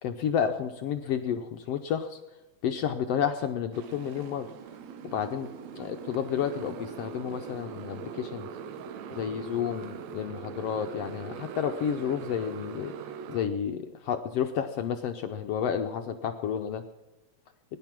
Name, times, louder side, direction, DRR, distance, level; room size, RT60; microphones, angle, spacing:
voice 1, 0.0-2.2 2.6-4.5 5.1-5.5 5.8-8.5 9.1-12.9 13.3-16.8, left 8 dB, 70° left, 7 dB, 1.5 m, -31 dB
Motorcycle, 3.7-13.5, right 6 dB, 75° right, 2.1 m, -41 dB
21.0 x 11.0 x 6.0 m, 1.1 s
omnidirectional pair, 3.4 m